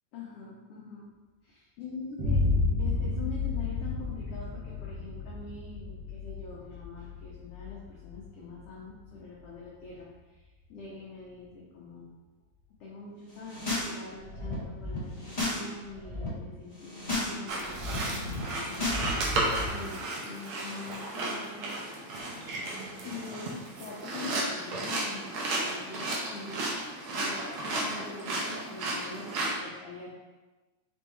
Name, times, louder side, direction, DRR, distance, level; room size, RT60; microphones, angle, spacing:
voice 1, 0.1-1.1 1.4-2.4 2.8-12.1 12.8-19.4 19.7-22.1 23.0-23.5 23.8-26.7 27.1-30.1, left 3 dB, 75° left, -4 dB, 1.4 m, -44 dB
Boom, 2.2-10.0, left 3 dB, 60° right, 1.9 m, -32 dB
sound 1, 13.3-13.9 14.2-15.6 15.9-16.3 16.7-17.3 17.6-19.7, left 2 dB, 35° left, 0.6 m, -34 dB
sound 2, 17.5-29.5, right 2 dB, 75° right, 1.2 m, -34 dB
5.1 x 3.1 x 3.3 m, 1.2 s
omnidirectional pair, 3.4 m